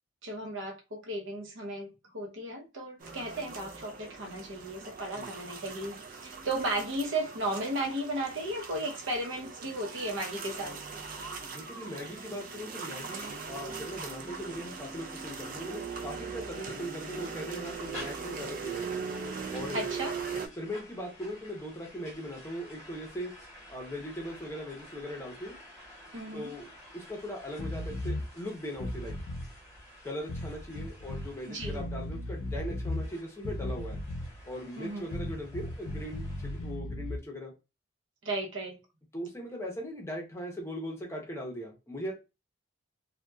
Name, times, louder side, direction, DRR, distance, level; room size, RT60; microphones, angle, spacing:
voice 1, 0.2-10.8 19.7-20.1 26.1-26.5 31.5-31.8 34.8-35.1 38.2-38.8, right 1 dB, 80° right, 0.7 m, -35 dB
sound 1, 3.0-20.5, right 5 dB, 45° right, 0.4 m, -40 dB
voice 2, 11.5-19.0 19.5-20.0 20.6-23.3 23.7-25.6 26.3-26.7 26.9-29.1 30.0-34.0 34.4-37.5 39.1-42.1, equal, 15° left, 0.6 m, -39 dB
sound 2, 17.6-36.7, left 1 dB, 5° right, 1.5 m, -52 dB
sound 3, 27.6-28.3 28.7-29.5 30.3-31.3 31.6-33.1 33.4-34.4 35.1-37.2, left 1 dB, 85° left, 0.5 m, -36 dB
2.7 x 2.2 x 2.2 m
head